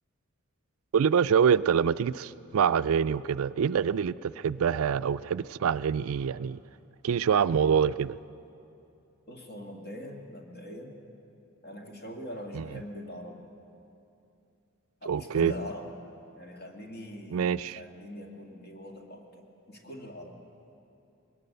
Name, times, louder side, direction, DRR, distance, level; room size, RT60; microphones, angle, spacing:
voice 1, 0.9-6.6 7.0-8.2 12.5-12.6 15.1-15.5 17.3-17.8, right 7 dB, 70° right, 16 dB, 0.4 m, -25 dB
voice 2, 9.3-11.0 11.6-13.5 15.0-15.9 16.3-20.4, equal, 50° left, 1 dB, 2.2 m, -42 dB
21.0 x 18.5 x 6.7 m, 2.7 s
head